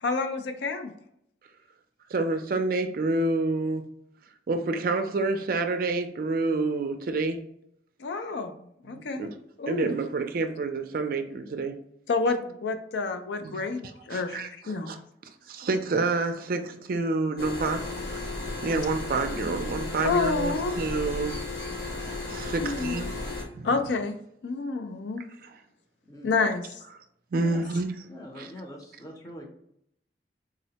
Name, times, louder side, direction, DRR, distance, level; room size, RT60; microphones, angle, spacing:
voice 1, 0.0-0.9 8.0-8.5 8.8-9.3 9.6-9.9 12.1-15.0 20.0-20.8 22.6-23.1 23.6-24.2 24.4-25.2 26.2-26.6 27.3-27.5, left 4 dB, 85° left, 7 dB, 0.4 m, -29 dB
voice 2, 2.1-3.9 4.5-7.4 8.9-9.3 9.7-11.7 13.4-13.6 14.1-15.0 15.5-17.8 18.6-21.3 22.3-23.1 23.5-23.7 25.4-25.6 27.3-27.9 28.4-28.5, right 3 dB, 55° right, 7 dB, 0.4 m, -28 dB
sound 1, 17.4-23.4, left 2 dB, 55° left, 0.9 m, -34 dB
voice 3, 28.1-29.5, left 1 dB, 20° left, 1 dB, 0.6 m, -43 dB
3.7 x 2.1 x 2.8 m, 0.74 s
head